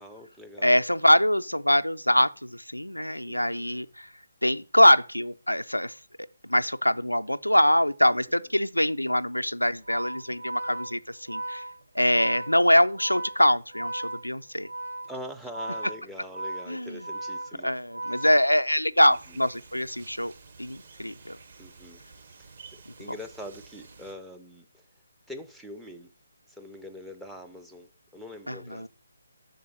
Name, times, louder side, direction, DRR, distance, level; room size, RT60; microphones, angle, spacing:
voice 1, 0.0-0.8 3.3-3.8 15.1-17.7 19.0-19.4 21.6-22.0 22.4-24.8 25.3-26.1 26.5-28.9, left 1 dB, ahead, 0.4 m, -43 dB
voice 2, 0.6-4.1 4.4-11.6 12.0-14.7 16.7-17.0 17.6-20.3 20.6-21.4 28.5-28.9, left 1 dB, 90° left, 0.3 m, -24 dB
Organ, 9.7-18.9, right 2 dB, 65° right, 2.1 m, -37 dB
sound 1, 19.1-24.1, right 4 dB, 45° right, 0.8 m, -51 dB
7.0 x 3.9 x 6.1 m
figure-of-eight pair, 145°, 0 cm